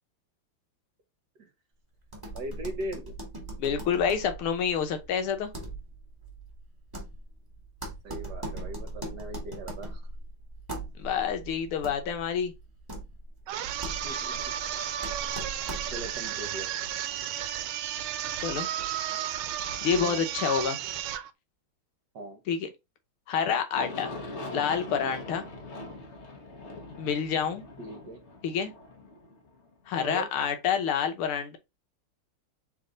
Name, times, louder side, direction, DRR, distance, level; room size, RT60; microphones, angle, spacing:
sound 1, 2.1-16.2, right 2 dB, 10° right, 1.3 m, -40 dB
voice 1, 2.3-3.1 8.0-10.0 14.0-14.5 15.9-16.7 19.9-20.2 22.1-22.4 27.8-28.2 30.0-30.3, right 1 dB, 55° right, 1.4 m, -39 dB
voice 2, 3.6-5.5 11.0-12.5 18.4-18.7 19.8-20.8 22.5-22.7 23.3-24.1 24.5-25.4 27.0-27.7 28.4-28.7 29.9-31.6, left 7 dB, 80° left, 1.8 m, -28 dB
sound 2, 13.5-21.3, right 11 dB, 80° right, 1.4 m, -33 dB
Aircraft, 23.7-30.4, left 2 dB, 45° left, 1.0 m, -42 dB
3.9 x 3.3 x 3.8 m
omnidirectional pair, 2.4 m